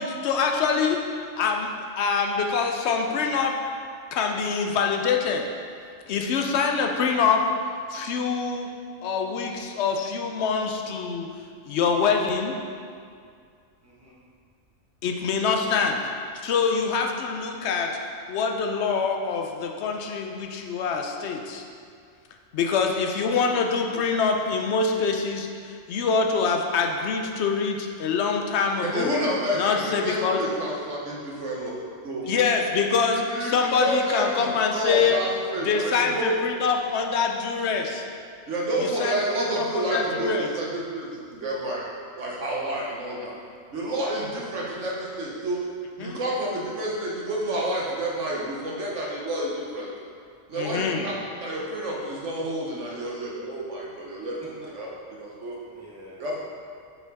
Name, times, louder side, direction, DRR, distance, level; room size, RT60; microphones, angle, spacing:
voice 1, 0.0-3.6 4.1-5.5 6.1-7.5 7.9-8.7 9.0-11.3 11.7-12.6 15.0-16.0 16.4-17.9 18.3-21.6 22.5-29.2 29.5-30.4 32.3-35.2 35.6-38.0 38.8-40.5 46.0-46.2 50.5-51.1, left 5 dB, 65° left, 3 dB, 0.7 m, -25 dB
voice 2, 13.8-14.2 15.4-15.8 54.2-54.9 55.7-56.2, equal, 15° right, -6 dB, 0.6 m, -49 dB
voice 3, 28.8-31.7 32.0-32.3 33.1-36.3 38.5-41.9 42.2-43.3 43.7-45.6 46.0-49.9 50.5-54.4 54.7-54.9 55.2-55.6 56.2-56.4, right 1 dB, 65° right, -3 dB, 1.1 m, -29 dB
5.8 x 4.4 x 4.0 m, 2.2 s
omnidirectional pair, 1.4 m